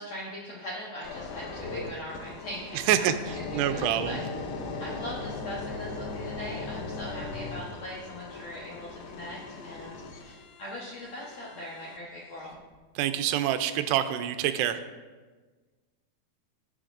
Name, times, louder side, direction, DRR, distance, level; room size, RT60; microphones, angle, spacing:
voice 1, 0.0-4.2 4.8-12.6, left 1 dB, 70° left, -5 dB, 1.6 m, -41 dB
sound 1, 1.0-12.0 12.5-12.8, left 3 dB, 90° left, 3.2 m, -38 dB
voice 2, 3.5-4.2 13.0-14.8, right 11 dB, 85° right, 9 dB, 2.7 m, -26 dB
18.5 x 7.2 x 2.5 m, 1.4 s
omnidirectional pair, 4.8 m